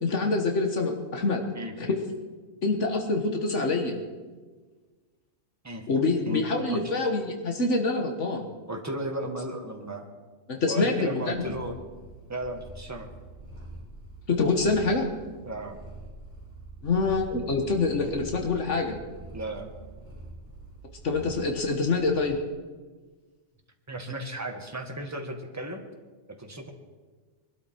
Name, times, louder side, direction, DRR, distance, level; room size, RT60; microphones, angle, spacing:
voice 1, 0.0-1.5 1.8-2.0 2.6-3.9 5.9-8.4 10.5-11.4 14.3-15.1 16.8-19.0 21.0-22.4, left 3 dB, 75° left, 3 dB, 1.7 m, -26 dB
voice 2, 8.7-10.0 10.7-11.7 12.3-13.1 15.4-15.8 19.3-19.7 23.9-25.8 26.3-26.7, right 1 dB, 15° right, 3 dB, 1.6 m, -35 dB
Purr, 11.2-22.4, right 2 dB, 55° left, 6.0 m, -45 dB
22.5 x 12.5 x 4.6 m, 1.4 s
omnidirectional pair, 1.2 m